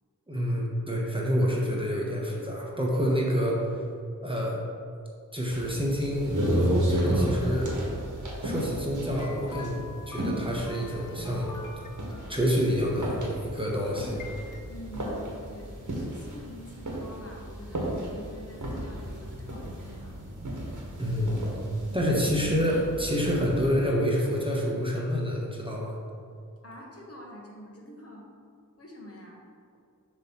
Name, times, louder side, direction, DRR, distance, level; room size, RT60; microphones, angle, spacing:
voice 1, 0.3-3.7 4.2-4.6 5.3-7.8 8.4-11.5 12.1-14.3 21.0-21.4 21.9-25.9, equal, 15° right, -3 dB, 1.0 m, -28 dB
sound 1, 5.5-23.7, right 1 dB, 60° right, 1.4 m, -33 dB
sound 2, 9.2-14.6, left 4 dB, 60° left, 0.5 m, -47 dB
voice 2, 14.7-20.2 26.6-28.3 28.8-29.4, equal, 40° left, -2 dB, 1.2 m, -46 dB
6.8 x 3.1 x 5.8 m, 2.3 s
wide cardioid pair, 85°, 34 cm